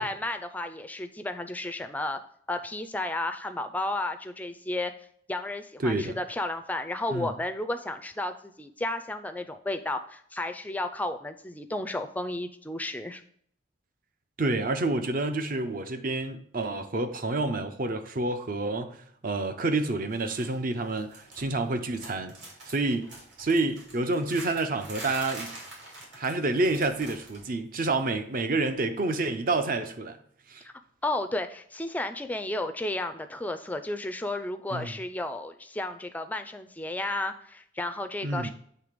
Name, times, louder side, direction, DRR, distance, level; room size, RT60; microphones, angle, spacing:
voice 1, 0.0-2.2 2.5-4.9 5.3-13.2 30.6-30.7 31.0-38.5, left 2 dB, 10° left, 0.3 m, -33 dB
voice 2, 5.8-6.2 7.1-7.3 14.4-22.3 22.7-23.1 23.4-25.5 26.1-30.2 30.5-30.6 34.7-34.9 38.2-38.5, right 2 dB, 45° right, 0.6 m, -28 dB
sound 1, 20.1-20.6 20.8-21.6 21.9-27.5 27.7-28.0 29.1-29.2, right 2 dB, 60° right, 2.6 m, -45 dB
7.7 x 3.2 x 5.0 m
head